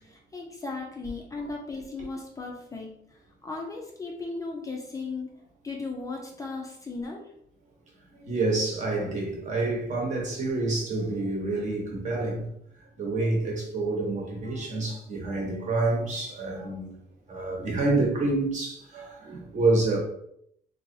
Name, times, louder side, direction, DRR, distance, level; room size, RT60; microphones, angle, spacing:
voice 1, 0.0-2.9 3.4-5.3 5.6-7.2, left 3 dB, 20° left, 0.5 m, -36 dB
voice 2, 8.2-12.4 13.0-16.9 17.3-20.0, right 2 dB, 40° right, 1.0 m, -28 dB
3.7 x 2.9 x 2.6 m
cardioid pair, 180°, 19 cm